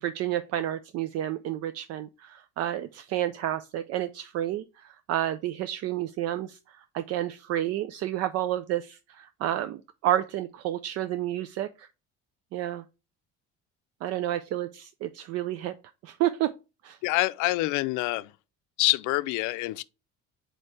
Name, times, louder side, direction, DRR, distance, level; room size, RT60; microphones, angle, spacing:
voice 1, 0.0-6.6 6.9-11.9 12.5-12.8 14.0-15.7 16.0-16.5 16.8-17.0, right 13 dB, 55° right, 0.4 m, -30 dB
voice 2, 17.0-18.3 18.8-19.8, left 19 dB, 80° left, 0.5 m, -26 dB
4.6 x 4.4 x 4.8 m
cardioid pair, 170°, 30 cm